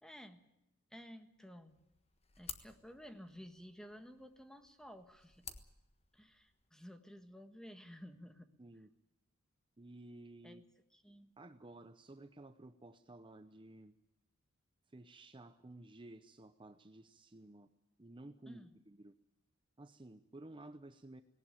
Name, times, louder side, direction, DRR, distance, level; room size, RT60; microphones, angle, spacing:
voice 1, 0.0-0.4 0.9-1.8 2.4-5.5 6.1-8.5 10.4-11.3 18.4-18.8, equal, 5° left, 8 dB, 1.5 m, -54 dB
sound 1, 1.7-6.7, left 7 dB, 30° left, 1.4 m, -54 dB
voice 2, 8.6-8.9 9.8-10.6 11.4-13.9 14.9-17.7 18.0-19.1 19.8-21.2, right 2 dB, 25° right, 9 dB, 0.7 m, -54 dB
19.0 x 18.5 x 9.0 m, 0.90 s
head